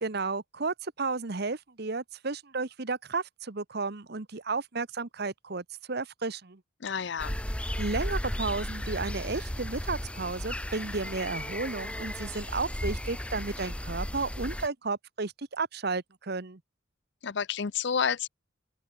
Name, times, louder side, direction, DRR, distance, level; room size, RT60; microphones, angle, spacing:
voice 1, 0.0-6.6 7.8-16.6, right 3 dB, 55° right, 1.1 m, -33 dB
voice 2, 6.8-7.4 17.2-18.3, left 7 dB, 60° left, 0.6 m, -30 dB
sound 1, 7.2-14.7, equal, 5° left, 1.2 m, -35 dB
open air
head